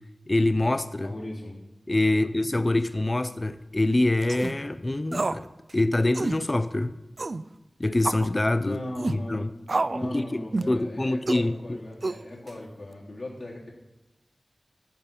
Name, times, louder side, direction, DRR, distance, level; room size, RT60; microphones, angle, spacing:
voice 1, 0.3-1.1 1.9-5.5 5.7-6.9 7.8-8.8 9.1-9.5 10.0-11.8, left 2 dB, 35° left, 0.5 m, -25 dB
voice 2, 1.0-1.6 2.1-2.3 8.6-9.4 9.9-13.7, left 1 dB, 65° left, 3.6 m, -38 dB
sound 1, 4.2-4.5 5.1-5.4 5.7-5.8 6.1-6.4 7.2-7.4 8.0-8.3 9.0-9.2 9.7-10.1 10.5-10.8 11.3-11.5 12.0-12.5, right 3 dB, 60° right, 0.4 m, -29 dB
13.0 x 5.4 x 7.2 m
cardioid pair, 45°, 0 cm